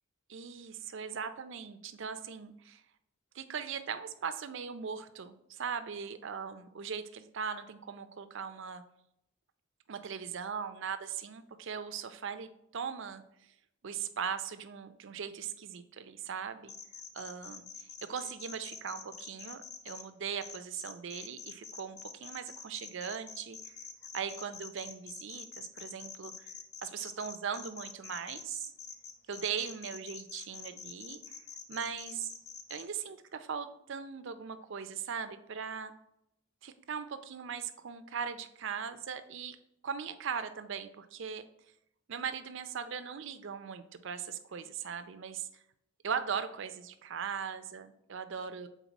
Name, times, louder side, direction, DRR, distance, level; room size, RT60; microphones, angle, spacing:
voice 1, 0.3-2.8 3.3-8.8 9.9-13.2 13.8-16.7 17.1-17.7 18.0-23.7 24.1-26.5 26.8-28.7 29.3-31.4 31.7-32.3 32.7-35.9 36.6-39.6 39.8-41.4 42.1-45.5 46.0-48.7, right 7 dB, 65° right, 10 dB, 0.5 m, -39 dB
sound 1, 16.7-20.0 20.4-32.8, left 6 dB, 55° left, 0.7 m, -46 dB
7.2 x 4.0 x 4.0 m, 0.80 s
head